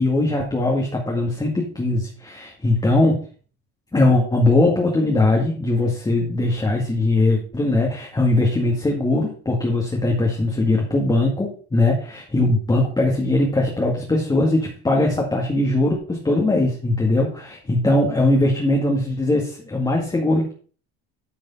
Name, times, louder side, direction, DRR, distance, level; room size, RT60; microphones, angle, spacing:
voice 1, 0.0-3.3 3.9-20.5, left 2 dB, 15° left, -1 dB, 2.1 m, -20 dB
10.0 x 5.1 x 5.4 m, 0.41 s
cardioid pair, 115°, 31 cm